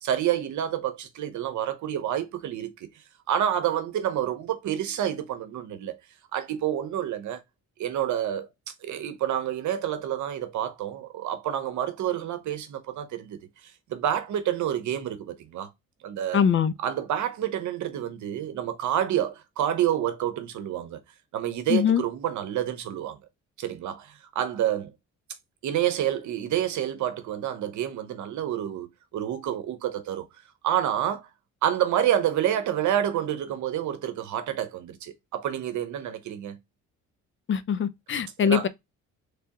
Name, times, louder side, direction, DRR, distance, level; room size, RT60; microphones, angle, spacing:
voice 1, 0.0-2.9 3.3-6.0 6.3-7.4 7.8-8.5 8.8-13.4 13.9-15.7 16.0-16.4 16.8-21.0 21.3-23.2 23.6-24.9 25.6-30.3 30.6-31.3 31.6-36.6 38.4-38.7, right 11 dB, 75° right, 0.9 m, -28 dB
voice 2, 16.3-16.7 21.7-22.0 37.5-38.7, left 7 dB, 40° left, 0.6 m, -22 dB
3.4 x 3.4 x 2.8 m
cardioid pair, 90°, 30 cm